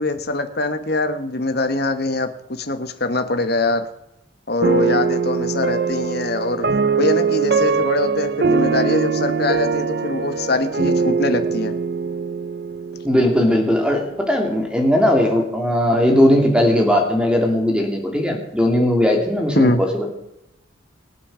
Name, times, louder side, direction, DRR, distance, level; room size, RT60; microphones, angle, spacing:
voice 1, 0.0-3.9 4.5-6.7 7.0-11.7 19.6-19.8, left 2 dB, 50° left, 8 dB, 1.4 m, -23 dB
sound 1, 4.6-13.8, right 5 dB, 50° right, 0.6 m, -22 dB
voice 2, 13.0-20.1, left 1 dB, 5° right, 1 dB, 3.0 m, -18 dB
24.5 x 9.0 x 5.1 m, 0.85 s
head